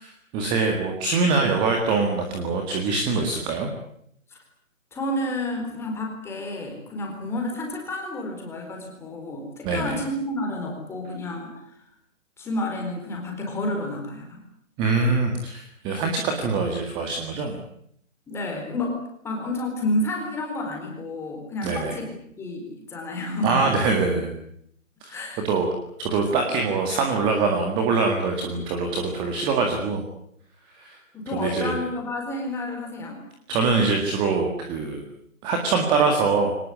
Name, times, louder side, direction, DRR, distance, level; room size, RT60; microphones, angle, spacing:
voice 1, 0.3-3.7 9.6-10.0 14.8-17.6 21.6-22.0 23.4-24.3 25.0-25.2 25.4-25.7 26.0-30.0 30.7-31.0 31.3-31.8 33.5-35.0 35.4-36.5, right 4 dB, 10° right, 4 dB, 1.9 m, -23 dB
voice 2, 4.9-11.9 12.4-14.5 18.3-23.7 25.1-25.4 31.1-33.2, left 1 dB, 5° left, 1 dB, 4.3 m, -30 dB
24.0 x 19.5 x 9.6 m, 0.70 s
hypercardioid pair, 160°, 40 cm